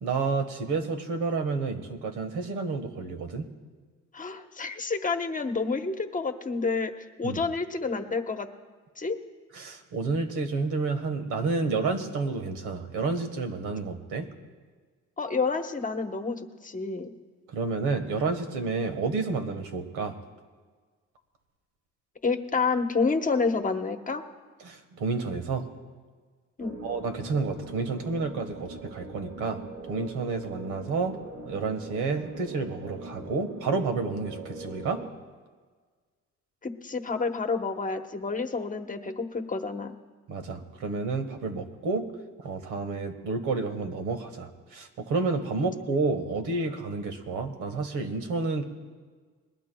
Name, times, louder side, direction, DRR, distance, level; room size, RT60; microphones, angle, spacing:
voice 1, 0.0-3.4 7.2-7.4 9.5-14.3 17.5-20.2 24.6-25.6 26.8-29.6 29.9-31.1 31.4-35.0 40.3-42.1 42.4-48.6, right 4 dB, 90° right, 7 dB, 1.4 m, -30 dB
voice 2, 4.1-6.9 7.2-8.5 9.0-9.2 15.2-17.1 22.2-24.2 26.6-26.8 36.6-39.9, left 4 dB, 25° left, 6 dB, 1.0 m, -29 dB
sound 1, 26.6-35.1, right 3 dB, 60° right, 1.9 m, -42 dB
21.5 x 20.0 x 2.3 m, 1.5 s
cardioid pair, 90°, 30 cm